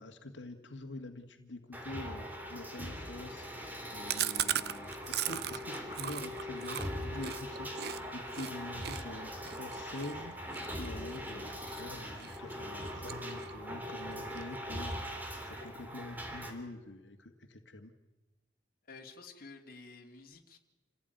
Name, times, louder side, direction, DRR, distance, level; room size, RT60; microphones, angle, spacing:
voice 1, 0.0-3.5 3.9-14.9 15.4-17.9, left 2 dB, 90° left, 5 dB, 1.8 m, -46 dB
sound 1, 1.7-16.5, equal, 10° right, 3.3 m, -41 dB
Chewing mastication, 4.1-8.0 8.3-8.5 8.8-11.8 12.2-12.5 12.8-13.7 14.0-14.1 14.4-14.5 14.8-15.4, right 11 dB, 60° right, 0.8 m, -37 dB
sound 2, 5.3-13.5, left 2 dB, 20° left, 4.6 m, -60 dB
voice 2, 18.9-20.6, left 3 dB, 55° left, 3 dB, 2.7 m, -51 dB
28.0 x 15.5 x 9.2 m, 1.1 s
head